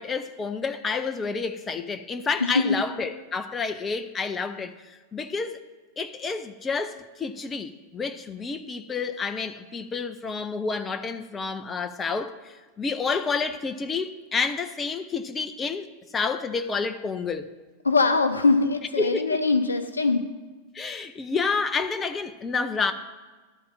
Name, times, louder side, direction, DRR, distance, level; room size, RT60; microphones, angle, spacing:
voice 1, 0.0-5.6 6.0-15.9 16.1-17.5 19.0-19.4 20.7-22.9, left 4 dB, 20° left, 0.4 m, -29 dB
voice 2, 2.4-2.8 17.8-20.3, left 3 dB, 75° left, 0.6 m, -22 dB
11.5 x 4.2 x 7.6 m
figure-of-eight pair, 90°, 0 cm